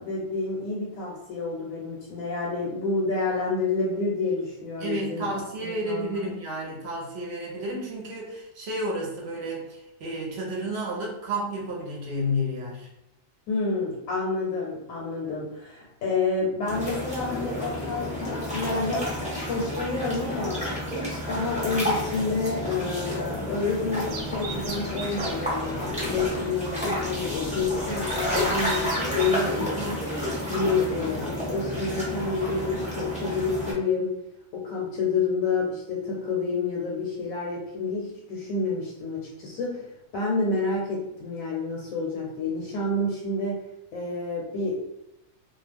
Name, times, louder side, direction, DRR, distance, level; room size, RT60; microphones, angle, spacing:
voice 1, 0.0-5.3 5.6-6.2 13.5-19.1 19.5-20.6 20.9-34.1 34.5-43.6 43.9-45.0, left 3 dB, 80° left, -3 dB, 1.0 m, -29 dB
voice 2, 4.8-12.9, equal, 60° right, -2 dB, 0.8 m, -31 dB
sound 1, 16.7-33.7, equal, 5° right, 0.7 m, -31 dB
sound 2, 24.1-29.3, right 3 dB, 85° right, 1.0 m, -40 dB
2.4 x 2.2 x 3.4 m, 0.85 s
omnidirectional pair, 1.4 m